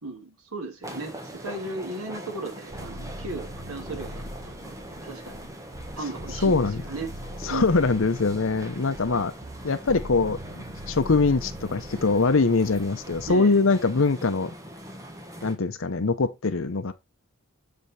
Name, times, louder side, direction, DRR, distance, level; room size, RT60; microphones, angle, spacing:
voice 1, 0.0-5.4 5.9-7.1 7.5-7.7 13.3-13.6, right 2 dB, 80° right, 2.0 m, -36 dB
sound 1, 0.8-15.5, right 1 dB, 15° right, 1.4 m, -42 dB
sound 2, 2.7-13.3, equal, 50° right, 1.7 m, -41 dB
voice 2, 6.4-6.8 7.4-9.3 9.6-14.5 15.4-16.9, left 3 dB, 60° left, 0.7 m, -23 dB
7.6 x 5.1 x 4.2 m
head